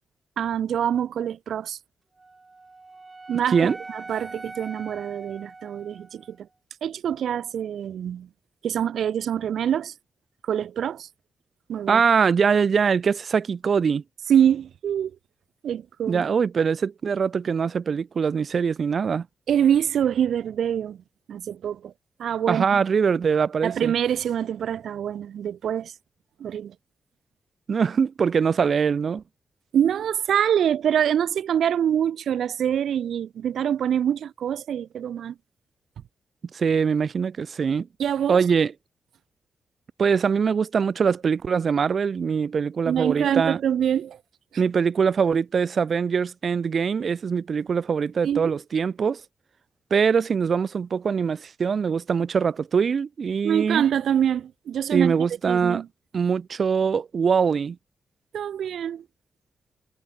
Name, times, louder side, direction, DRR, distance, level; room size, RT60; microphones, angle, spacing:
voice 1, 0.4-1.8 3.3-6.5 6.8-8.3 8.6-9.9 10.4-11.1 11.7-12.0 14.3-15.1 15.6-16.2 19.5-21.0 21.3-21.9 22.2-22.7 23.6-25.9 26.4-26.7 29.7-35.3 38.0-38.4 42.8-44.2 48.2-48.5 53.4-55.1 55.5-55.9 58.3-59.0, right 9 dB, 90° right, 1.4 m, -25 dB
Wind instrument woodwind instrument, 2.2-6.4, right 3 dB, 20° right, 2.1 m, -42 dB
voice 2, 11.9-14.0 16.1-19.3 22.5-23.9 27.7-29.2 36.5-37.9 38.3-38.7 40.0-43.6 44.6-49.2 49.9-53.8 54.9-55.8 56.1-57.8, right 6 dB, 50° right, 0.4 m, -23 dB
wide cardioid pair, 155°, 0 cm